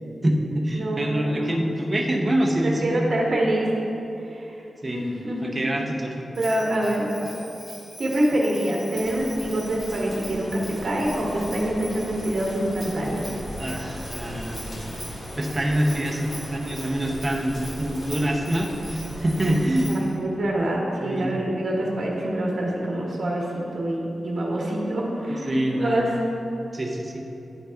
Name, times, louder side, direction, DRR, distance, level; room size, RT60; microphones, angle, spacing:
voice 1, 0.2-3.1 4.8-5.0 5.4-6.3 13.6-15.0 15.4-20.0 21.0-21.3 25.5-26.0 26.7-27.2, right 1 dB, 25° right, 0 dB, 0.7 m, -25 dB
voice 2, 0.7-1.6 2.6-3.7 4.3-5.6 6.3-7.3 8.0-13.3 19.9-26.1, right 1 dB, 50° right, -3 dB, 1.3 m, -26 dB
Bell, 6.3-20.2, equal, 15° left, 1.2 m, -43 dB
sound 1, 8.9-19.9, equal, 65° left, 1.3 m, -38 dB
10.0 x 4.0 x 3.5 m, 3.0 s
wide cardioid pair, 130°, 0 cm